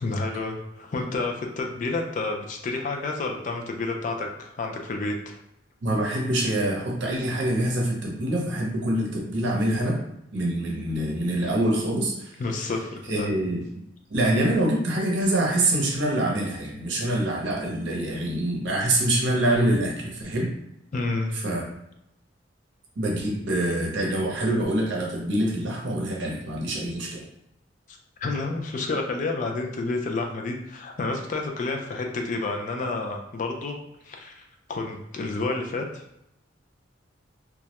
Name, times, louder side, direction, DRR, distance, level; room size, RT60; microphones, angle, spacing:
voice 1, 0.0-5.4 12.4-13.3 20.9-21.3 27.9-33.8 34.0-34.4 34.7-36.0, left 3 dB, 45° left, 2 dB, 0.3 m, -30 dB
voice 2, 5.8-10.0 10.3-12.3 13.1-13.8 14.1-20.5 21.3-21.6 23.0-27.3, right 1 dB, 80° right, -1 dB, 0.6 m, -25 dB
2.2 x 2.0 x 2.8 m, 0.81 s
head